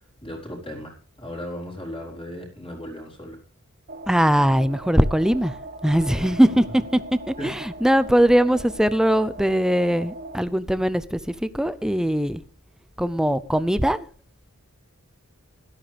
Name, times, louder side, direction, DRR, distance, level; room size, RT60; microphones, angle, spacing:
voice 1, 0.2-3.4 6.3-6.6 7.4-7.7, equal, 25° left, -1 dB, 4.3 m, -37 dB
sound 1, 3.9-10.4, right 2 dB, 40° right, 1.1 m, -40 dB
voice 2, 4.1-5.5 5.8-7.0 7.3-7.5 7.8-12.4 13.0-14.0, equal, 5° right, 14 dB, 0.6 m, -20 dB
17.0 x 13.0 x 3.4 m, 0.40 s
head